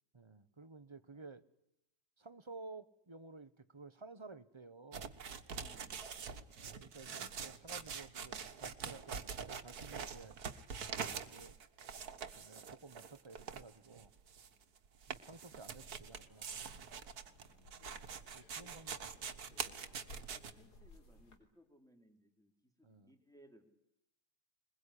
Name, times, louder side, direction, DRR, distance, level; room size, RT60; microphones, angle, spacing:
voice 1, 0.1-1.4 2.2-5.1 6.5-10.3 10.9-11.6 12.3-14.1 15.1-16.9 18.3-19.4 22.8-23.1, right 3 dB, 20° right, 14 dB, 0.9 m, -54 dB
sound 1, 4.9-20.5, right 6 dB, 70° right, 1.9 m, -45 dB
voice 2, 5.5-6.1 14.5-14.7 17.2-17.8 18.5-18.8 20.1-23.7, equal, ahead, 4 dB, 3.3 m, -66 dB
sound 2, 15.7-21.4, left 1 dB, 85° left, 4.0 m, -59 dB
22.0 x 21.5 x 10.0 m, 0.82 s
omnidirectional pair, 1.7 m